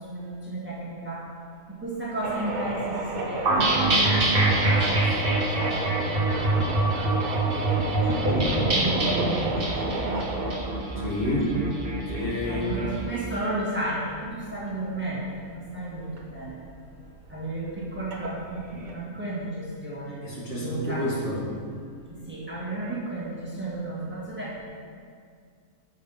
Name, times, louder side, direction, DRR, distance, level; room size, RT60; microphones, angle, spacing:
voice 1, 0.1-1.3 1.8-6.5 6.8-7.1 7.5-9.4 12.5-16.6 17.3-20.2 20.6-21.1 22.1-24.6, right 1 dB, 10° right, -7 dB, 1.6 m, -33 dB
sound 1, 2.2-18.9, right 3 dB, 85° right, 1.4 m, -34 dB
sound 2, 3.5-12.9, right 2 dB, 40° right, 1.3 m, -25 dB
voice 2, 10.9-11.6 12.1-12.9 20.2-21.4, left 1 dB, 50° left, -7 dB, 2.0 m, -29 dB
7.7 x 5.6 x 5.4 m, 2.2 s
omnidirectional pair, 1.5 m